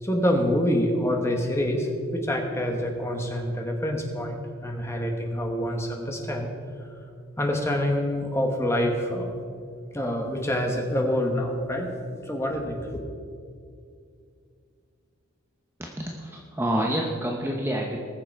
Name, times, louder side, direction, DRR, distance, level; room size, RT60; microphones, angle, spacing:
voice 1, 0.0-6.5 7.4-9.4 9.9-11.9 12.3-13.0, equal, 10° left, 2 dB, 1.2 m, -26 dB
voice 2, 15.8-18.0, right 1 dB, 10° right, -1 dB, 0.7 m, -28 dB
19.5 x 6.9 x 4.6 m, 2.3 s
head